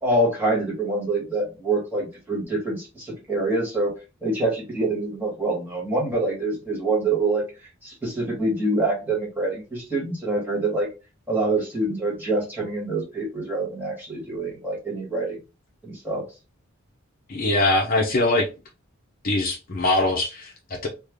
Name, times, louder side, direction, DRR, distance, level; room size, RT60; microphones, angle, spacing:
voice 1, 0.0-3.9 4.2-7.4 7.8-10.9 11.3-15.4 15.8-16.2, right 2 dB, 10° right, 1.4 m, -25 dB
voice 2, 17.3-18.5 19.2-20.9, left 2 dB, 45° left, 0.6 m, -22 dB
3.3 x 2.2 x 3.4 m
head